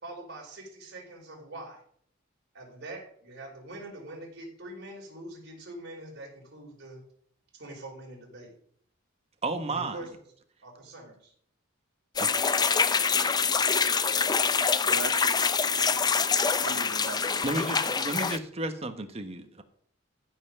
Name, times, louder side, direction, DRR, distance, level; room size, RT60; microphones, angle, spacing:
voice 1, 0.0-1.8 2.5-7.0 7.5-8.5 9.7-10.2 10.6-11.3, right 1 dB, 55° right, 4.8 m, -44 dB
voice 2, 9.4-10.0 12.2-12.3 17.4-19.6, right 2 dB, 30° right, 1.3 m, -32 dB
sound 1, 12.2-18.4, left 5 dB, 20° left, 0.5 m, -25 dB
voice 3, 14.9-16.1 16.6-17.6, right 4 dB, 80° right, 1.1 m, -41 dB
14.5 x 5.7 x 6.8 m
head